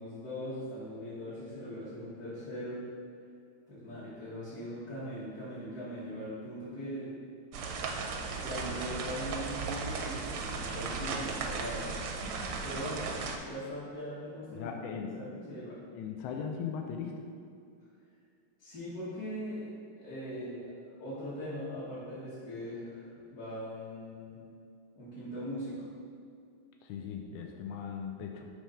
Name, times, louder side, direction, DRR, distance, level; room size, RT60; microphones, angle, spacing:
voice 1, 0.0-2.8 3.7-7.1 8.4-15.8 18.6-20.7 21.0-24.4 25.0-25.9, equal, 45° left, -11 dB, 1.6 m, -40 dB
sound 1, 7.5-13.4, right 4 dB, 70° right, 1.2 m, -36 dB
voice 2, 14.5-15.1 15.9-17.1 26.8-28.5, left 7 dB, 75° left, 3 dB, 1.3 m, -38 dB
6.3 x 3.3 x 5.4 m, 2.3 s
omnidirectional pair, 2.4 m